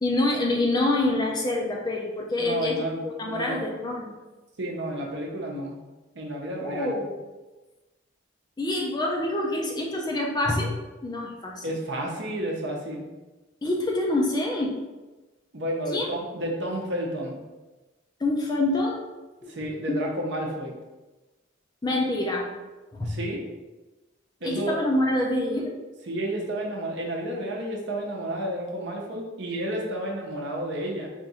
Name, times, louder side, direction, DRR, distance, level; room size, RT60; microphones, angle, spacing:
voice 1, 0.0-4.1 6.6-7.1 8.6-10.7 11.0-11.6 13.6-14.8 15.9-16.0 18.2-19.0 19.4-19.6 19.9-20.0 21.8-22.5 22.9-23.2 24.4-25.7, left 2 dB, 20° left, -1 dB, 0.4 m, -26 dB
voice 2, 2.4-3.0 3.2-3.6 4.6-5.8 6.1-7.0 11.6-13.0 15.5-17.4 19.5-20.7 23.0-23.5 24.4-24.8 26.1-31.1, right 1 dB, 60° right, -1 dB, 0.8 m, -31 dB
3.5 x 2.5 x 4.1 m, 1.1 s
head